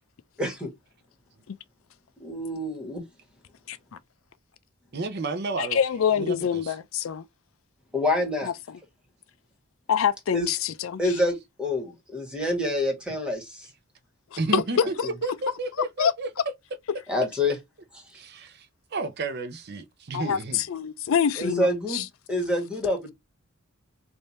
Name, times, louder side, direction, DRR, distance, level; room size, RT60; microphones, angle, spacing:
voice 1, 0.4-0.7 2.2-3.0 7.9-8.5 10.3-10.5 11.0-13.7 14.8-15.1 17.1-17.5 18.1-18.2 21.4-23.1, left 1 dB, 5° right, 1.5 m, -27 dB
voice 2, 4.9-5.8 6.1-6.7 14.3-16.3 18.1-20.6, right 3 dB, 50° right, 0.6 m, -32 dB
voice 3, 5.6-7.2 8.4-8.5 9.9-11.0 14.5-14.6 15.0-15.1 16.0-16.1 20.1-22.0, left 8 dB, 70° left, 0.4 m, -25 dB
3.3 x 2.7 x 4.1 m
head